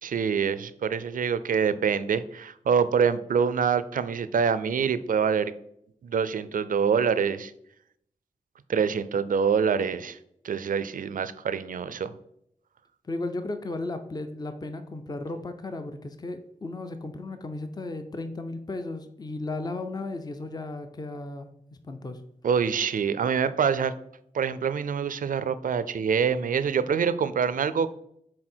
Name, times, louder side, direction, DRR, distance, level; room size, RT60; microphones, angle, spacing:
voice 1, 0.0-5.5 6.0-7.5 8.7-10.2 10.4-12.1 22.4-23.9 24.3-27.9, right 6 dB, 85° right, 14 dB, 0.4 m, -25 dB
voice 2, 13.0-22.2, left 2 dB, 30° left, 7 dB, 0.5 m, -35 dB
6.4 x 4.0 x 4.4 m, 0.72 s
wide cardioid pair, 85°, 14 cm